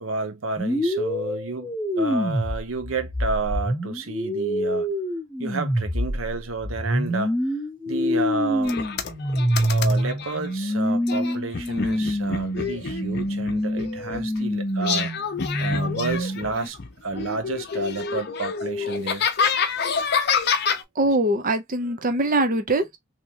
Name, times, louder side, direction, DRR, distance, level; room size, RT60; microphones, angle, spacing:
voice 1, 0.0-4.9 5.4-7.4 7.9-8.8 9.7-15.1 15.6-19.3, right 3 dB, 80° right, 0.8 m, -31 dB
sound 1, 0.6-16.7, equal, 5° left, 0.8 m, -26 dB
sound 2, 8.6-10.4 11.1-14.4 14.8-16.9 17.1-20.8, left 6 dB, 55° left, 0.6 m, -28 dB
voice 2, 20.9-23.0, right 2 dB, 40° right, 0.7 m, -22 dB
3.4 x 3.0 x 2.8 m
head